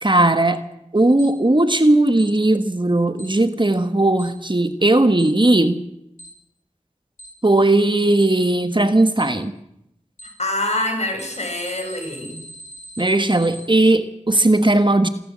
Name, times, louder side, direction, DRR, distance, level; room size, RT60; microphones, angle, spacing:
voice 1, 0.0-0.6 0.9-5.8 7.4-9.5 13.0-15.1, right 2 dB, 40° right, 10 dB, 1.6 m, -17 dB
Alarm, 1.2-1.3 2.2-2.3 3.2-3.3 4.2-4.3 5.2-5.3 6.2-6.3 7.2-7.3 8.2-8.3 9.2-9.3 10.2-10.3 11.2-13.6, right 1 dB, 80° left, 7.9 m, -40 dB
voice 2, 10.4-12.4, left 1 dB, 60° left, 3 dB, 6.7 m, -25 dB
27.5 x 14.0 x 7.6 m, 0.80 s
wide cardioid pair, 40°, 13 cm